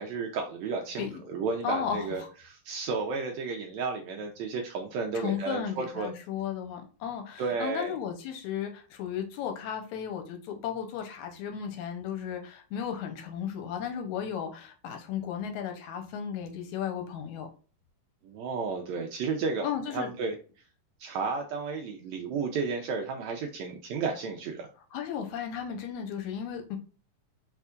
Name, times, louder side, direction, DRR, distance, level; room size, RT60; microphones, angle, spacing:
voice 1, 0.0-6.1 7.4-7.9 18.2-19.6 19.9-20.4 21.0-24.7, right 4 dB, 85° right, 1.6 m, -32 dB
voice 2, 1.6-2.3 5.1-17.5 19.6-20.1 24.9-26.8, left 8 dB, 75° left, 1.9 m, -35 dB
4.4 x 4.3 x 2.4 m
omnidirectional pair, 3.8 m